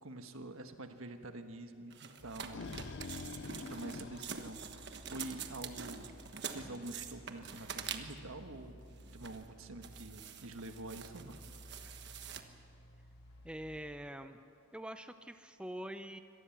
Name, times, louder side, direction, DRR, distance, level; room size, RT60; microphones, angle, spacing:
voice 1, 0.0-2.9 3.5-4.6 5.0-6.1 6.5-11.4, right 2 dB, 75° right, 7 dB, 1.5 m, -47 dB
sound 1, 1.9-8.3 8.9-9.5 9.8-12.4, right 7 dB, 50° right, 1.3 m, -46 dB
sound 2, 2.2-13.8, left 1 dB, 75° left, 4.1 m, -56 dB
sound 3, 2.2-5.4, left 3 dB, 55° left, 0.6 m, -46 dB
voice 2, 13.4-14.4 14.7-16.2, right 1 dB, 5° right, 9 dB, 0.6 m, -44 dB
25.0 x 18.5 x 7.3 m, 2.5 s
head